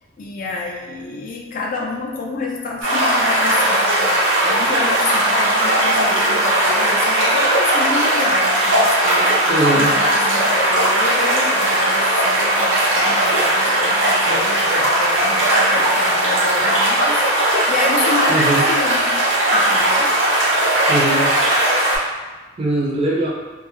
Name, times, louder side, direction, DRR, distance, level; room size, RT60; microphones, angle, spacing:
voice 1, 0.2-9.4 9.7-19.3 19.5-20.2, left 3 dB, 45° left, 0 dB, 0.3 m, -29 dB
sound 1, 2.8-22.0, right 1 dB, 85° right, 0.8 m, -17 dB
voice 2, 9.5-9.9 18.3-18.6 20.9-21.3 22.6-23.3, right 1 dB, 30° right, -4 dB, 0.4 m, -20 dB
2.2 x 2.0 x 3.0 m, 1.2 s
head